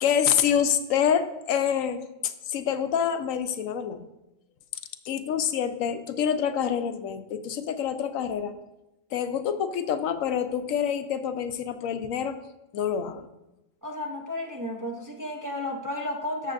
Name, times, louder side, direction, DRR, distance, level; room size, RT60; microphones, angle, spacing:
voice 1, 0.0-4.0 5.0-8.5 9.1-12.4 12.7-13.3, left 8 dB, 90° left, 9 dB, 1.0 m, -27 dB
voice 2, 13.8-16.5, left 1 dB, 20° right, 0 dB, 0.5 m, -33 dB
13.5 x 6.4 x 2.5 m, 0.94 s
omnidirectional pair, 1.3 m